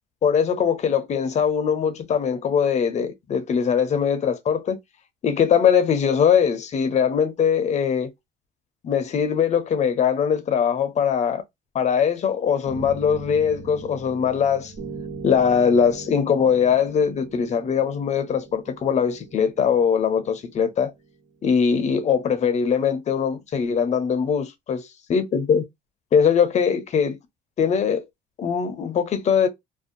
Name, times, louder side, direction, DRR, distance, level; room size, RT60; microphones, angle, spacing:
voice 1, 0.2-4.8 5.2-8.1 8.8-11.4 11.7-14.7 15.2-20.9 21.4-24.8 25.1-25.6 26.1-27.2 27.6-28.0 28.4-29.5, left 7 dB, 45° left, 0.6 m, -21 dB
sound 1, 12.6-21.5, right 4 dB, 60° right, 1.4 m, -40 dB
2.5 x 2.2 x 2.6 m
cardioid pair, 110°, 17 cm